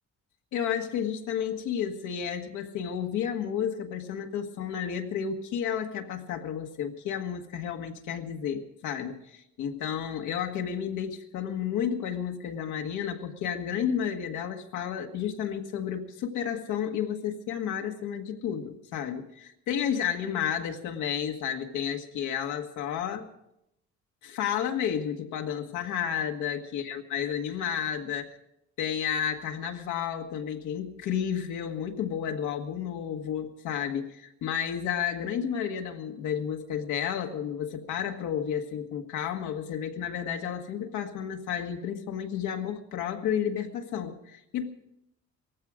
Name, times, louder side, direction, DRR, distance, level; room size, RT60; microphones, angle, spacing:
voice 1, 0.5-23.3 24.2-28.4 28.8-44.7, left 8 dB, 85° left, 4 dB, 1.6 m, -31 dB
18.5 x 15.0 x 5.0 m, 0.80 s
cardioid pair, 140°, 29 cm